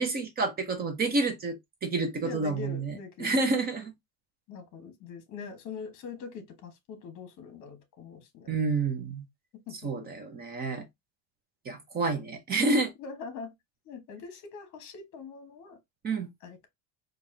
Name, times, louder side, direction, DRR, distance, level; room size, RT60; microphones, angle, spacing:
voice 1, 0.0-3.9 8.5-9.3 9.8-10.8 11.7-12.9 16.0-16.3, right 3 dB, 20° right, 0.6 m, -29 dB
voice 2, 2.2-3.4 4.5-8.5 9.7-10.1 13.0-13.5 13.8-15.8 16.4-16.7, left 5 dB, 40° left, 1.2 m, -43 dB
4.6 x 2.4 x 2.6 m
cardioid pair, 160°, 45 cm